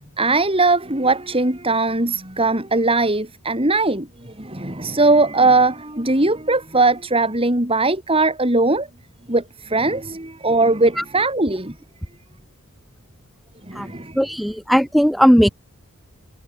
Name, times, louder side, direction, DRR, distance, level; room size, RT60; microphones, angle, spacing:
voice 1, 0.2-8.9 9.3-11.7 13.7-14.2, right 2 dB, 25° right, 4.4 m, -19 dB
voice 2, 13.7-15.5, equal, ahead, 3.4 m, -17 dB
head